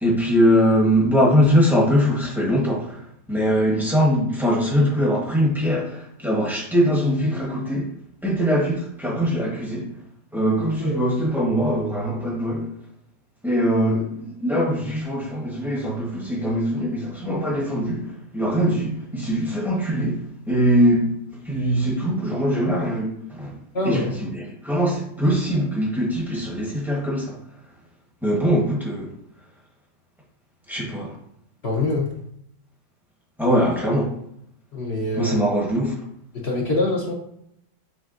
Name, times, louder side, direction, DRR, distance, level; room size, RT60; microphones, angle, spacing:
voice 1, 0.0-3.0 3.3-7.9 8.2-9.9 10.3-12.7 13.4-18.1 18.3-20.2 20.5-21.1 21.5-23.5 23.8-24.0 24.6-27.4 28.2-29.1 30.7-31.1 33.4-34.1 35.2-36.0, equal, ahead, 0.6 m, -21 dB
voice 2, 23.7-24.2 31.6-32.1 34.7-35.4 36.3-37.1, left 2 dB, 55° left, 0.7 m, -24 dB
6.4 x 3.4 x 2.5 m
omnidirectional pair, 1.9 m